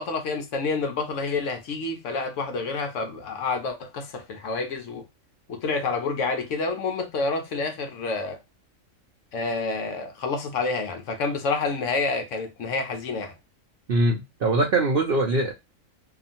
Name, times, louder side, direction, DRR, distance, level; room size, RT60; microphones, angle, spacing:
voice 1, 0.0-5.0 5.5-8.4 9.3-13.3, left 4 dB, 65° left, 0.9 m, -28 dB
voice 2, 13.9-15.5, right 2 dB, 60° right, 0.6 m, -22 dB
2.8 x 2.4 x 2.5 m
omnidirectional pair, 1.5 m